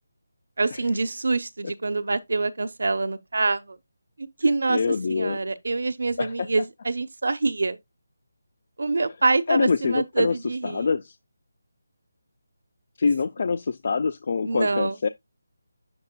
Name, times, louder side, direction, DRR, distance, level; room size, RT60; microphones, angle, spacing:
voice 1, 0.6-3.8 4.2-7.8 8.8-10.9 14.4-15.0, right 3 dB, 65° right, 0.9 m, -25 dB
voice 2, 4.7-5.4 6.2-6.3 9.5-10.3 10.6-11.2 13.0-15.1, left 5 dB, 40° left, 0.3 m, -25 dB
8.5 x 7.0 x 2.2 m
figure-of-eight pair, 175°, 0 cm